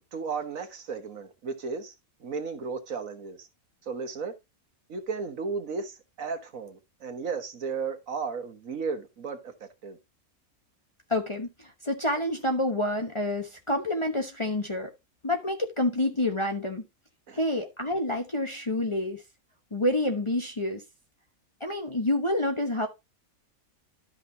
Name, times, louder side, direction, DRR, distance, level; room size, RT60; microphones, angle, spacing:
voice 1, 0.0-1.9 2.2-3.5 3.8-4.3 4.9-10.0 17.3-17.4, right 5 dB, 65° right, 1.7 m, -34 dB
voice 2, 11.1-14.9 15.2-16.8 17.3-19.2 19.7-20.8 21.6-22.9, left 1 dB, 25° left, 1.0 m, -28 dB
12.5 x 5.8 x 2.7 m
omnidirectional pair, 1.5 m